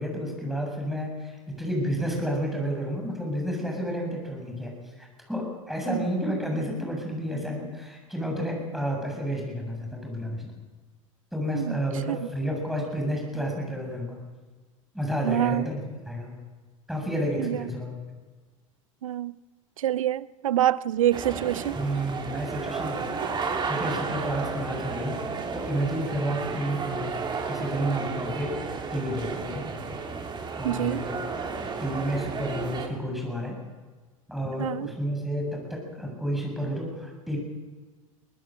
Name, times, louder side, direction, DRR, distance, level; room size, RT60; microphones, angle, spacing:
voice 1, 0.0-10.5 11.3-14.3 14.9-16.4 16.9-18.0 21.8-23.0 23.7-25.2 25.5-28.6 28.9-29.8 30.6-31.1 31.8-33.6 34.3-37.4, equal, ahead, 7.6 m, -31 dB
voice 2, 15.2-15.7 17.4-17.7 19.0-19.4 19.8-21.8 30.6-31.0 34.6-34.9, right 12 dB, 70° right, 0.6 m, -26 dB
sound 1, 21.1-32.9, right 4 dB, 25° right, 3.0 m, -32 dB
23.0 x 19.0 x 6.4 m
figure-of-eight pair, 80°, 18 cm